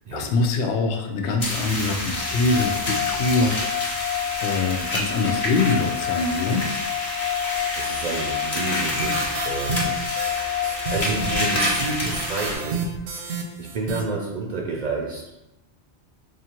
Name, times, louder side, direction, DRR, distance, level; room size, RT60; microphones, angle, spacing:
voice 1, 0.1-3.9 4.4-6.7, left 3 dB, 85° left, 3 dB, 0.9 m, -24 dB
sound 1, 1.4-12.5, left 1 dB, 40° left, 1.0 m, -29 dB
sound 2, 2.1-12.2, left 12 dB, 15° left, 0.5 m, -30 dB
voice 2, 7.4-9.9 10.2-10.5 10.9-12.8 13.1-15.2, right 3 dB, 55° right, -2 dB, 0.5 m, -30 dB
sound 3, 8.7-14.0, right 4 dB, 80° right, 0.8 m, -31 dB
4.9 x 2.4 x 2.9 m, 0.95 s
omnidirectional pair, 1.1 m